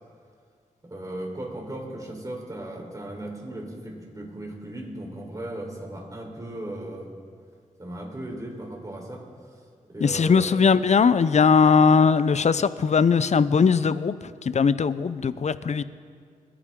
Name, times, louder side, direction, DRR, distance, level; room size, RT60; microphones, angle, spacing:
voice 1, 0.8-7.1 7.8-9.2 9.9-10.6, right 1 dB, 25° right, 0 dB, 4.0 m, -36 dB
voice 2, 10.0-15.8, left 5 dB, 55° left, 15 dB, 0.6 m, -20 dB
29.5 x 9.9 x 3.8 m, 2.1 s
cardioid pair, 55°, 14 cm